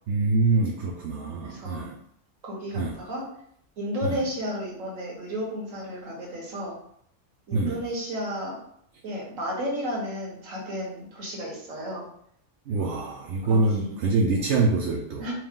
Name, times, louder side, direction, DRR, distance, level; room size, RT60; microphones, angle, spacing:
voice 1, 0.1-2.0 2.7-3.0 4.0-4.2 7.5-7.8 12.7-15.3, right 3 dB, 70° right, 0 dB, 0.9 m, -25 dB
voice 2, 1.4-1.9 2.4-3.3 3.8-6.8 7.5-8.6 9.0-12.0 13.4-14.0 15.2-15.3, equal, 85° right, -3 dB, 1.6 m, -33 dB
4.6 x 2.2 x 3.6 m, 0.70 s
omnidirectional pair, 1.3 m